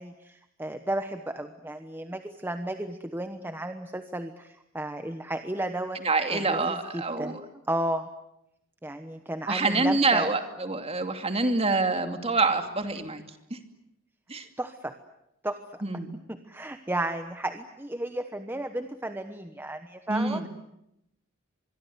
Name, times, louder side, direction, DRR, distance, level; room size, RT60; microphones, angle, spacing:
voice 1, 0.0-6.0 6.3-7.4 7.7-8.1 8.8-10.3 14.6-14.9 15.4-15.8 16.3-20.5, right 1 dB, 10° right, 8 dB, 1.1 m, -33 dB
voice 2, 6.0-7.5 9.5-13.2 13.5-13.6 14.3-14.5 15.8-16.1 20.1-20.5, right 3 dB, 30° right, 7 dB, 2.6 m, -26 dB
25.0 x 22.5 x 9.6 m, 0.83 s
head